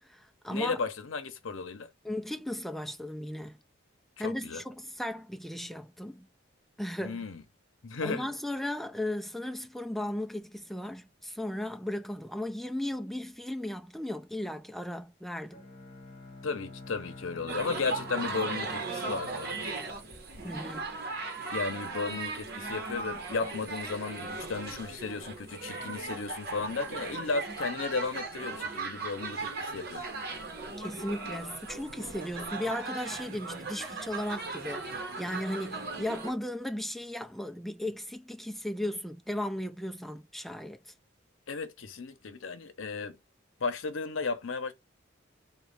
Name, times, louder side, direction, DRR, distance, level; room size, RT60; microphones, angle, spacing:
voice 1, 0.0-0.8 2.0-3.6 4.2-6.3 6.8-7.2 8.0-15.6 20.4-20.9 30.8-40.8, left 1 dB, ahead, 0.3 m, -36 dB
voice 2, 0.5-1.9 4.2-4.6 7.0-7.4 7.8-8.3 16.4-19.6 21.5-30.2 41.5-43.2 43.6-44.7, left 4 dB, 80° left, 0.7 m, -34 dB
Bowed string instrument, 15.5-20.5, left 2 dB, 30° left, 1.1 m, -48 dB
sound 1, 17.5-36.3, right 3 dB, 50° right, 1.1 m, -38 dB
4.0 x 2.3 x 3.3 m
head